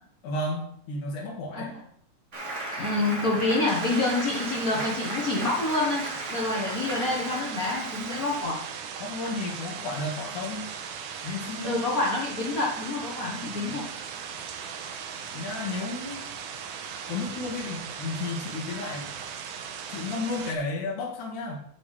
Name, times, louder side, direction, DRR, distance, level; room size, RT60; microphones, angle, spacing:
voice 1, 0.2-1.7 9.0-10.7 11.2-11.8 13.4-13.8 15.3-16.2 17.1-19.2 19.9-21.6, left 2 dB, 80° left, -3 dB, 3.1 m, -33 dB
Applause, 2.3-8.4, right 1 dB, 30° right, 1.9 m, -36 dB
voice 2, 2.8-8.6 11.6-13.8, left 2 dB, 45° left, -2 dB, 1.2 m, -27 dB
sound 1, 3.7-20.5, right 7 dB, 85° right, 2.4 m, -38 dB
8.5 x 6.3 x 4.8 m, 0.67 s
omnidirectional pair, 3.5 m